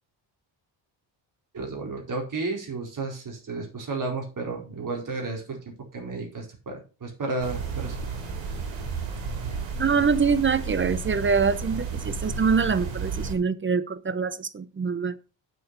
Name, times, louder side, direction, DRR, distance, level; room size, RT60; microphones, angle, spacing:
voice 1, 1.5-8.0, right 3 dB, 45° right, 4.4 m, -32 dB
sound 1, 7.4-13.3, right 5 dB, 80° right, 3.7 m, -32 dB
voice 2, 9.8-15.2, right 5 dB, 25° right, 0.8 m, -24 dB
7.6 x 6.8 x 6.0 m
cardioid pair, 90°, 45 cm